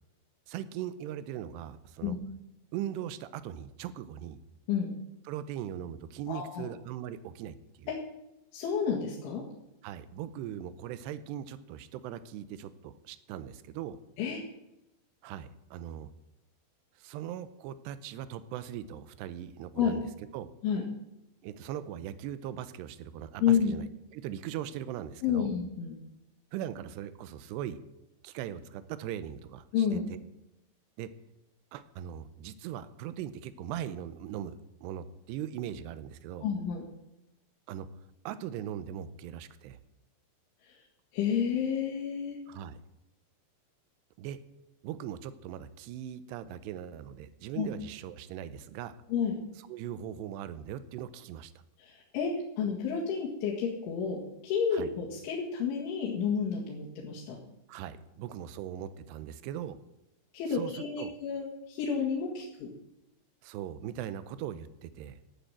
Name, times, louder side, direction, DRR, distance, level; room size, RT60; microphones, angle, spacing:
voice 1, 0.5-2.2 2.7-4.4 5.3-7.9 9.8-14.0 15.2-16.1 17.0-20.1 20.3-20.5 21.4-23.9 24.1-25.5 26.5-27.8 28.2-30.2 31.0-31.1 31.7-36.5 37.7-37.9 38.3-39.8 42.5-42.8 44.2-44.4 44.8-48.9 49.7-51.5 54.7-54.9 57.7-59.8 60.5-61.2 63.4-65.2, right 10 dB, 75° right, 13 dB, 2.6 m, -40 dB
voice 2, 6.3-6.7 7.9-8.0 8.5-9.5 14.2-14.4 19.8-19.9 20.6-20.8 23.4-23.7 25.2-26.0 29.7-30.0 36.4-36.8 40.6-40.8 41.1-42.4 47.6-47.7 49.1-49.4 51.8-57.4 60.3-62.7, left 7 dB, 80° left, -5 dB, 4.4 m, -30 dB
12.5 x 8.1 x 9.0 m, 0.89 s
omnidirectional pair, 5.4 m